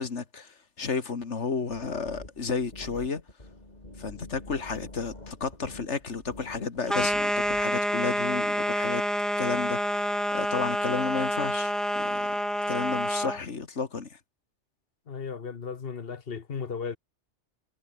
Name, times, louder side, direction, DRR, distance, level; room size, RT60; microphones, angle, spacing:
voice 1, 0.0-3.2 4.0-9.0 9.4-12.3 12.7-14.2, left 5 dB, 80° left, 2.2 m, -32 dB
sound 1, 1.7-7.6, left 2 dB, 35° left, 4.0 m, -46 dB
sound 2, 6.9-13.4, equal, ahead, 1.1 m, -28 dB
voice 2, 15.1-17.0, left 6 dB, 55° left, 1.3 m, -35 dB
omnidirectional pair, 1.2 m